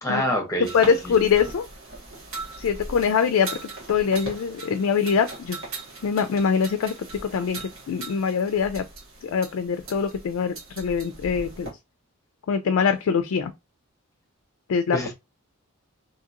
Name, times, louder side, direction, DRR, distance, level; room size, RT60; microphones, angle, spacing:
voice 1, 0.0-1.1 14.9-15.1, equal, 15° left, 0.9 m, -27 dB
sound 1, 0.6-11.7, right 2 dB, 60° right, 1.3 m, -39 dB
voice 2, 0.7-1.7 2.6-3.6 3.9-5.6 6.0-6.9 7.2-8.8 9.2-11.7 12.5-13.5 14.7-15.0, left 6 dB, 70° left, 0.3 m, -23 dB
2.8 x 2.8 x 2.4 m
head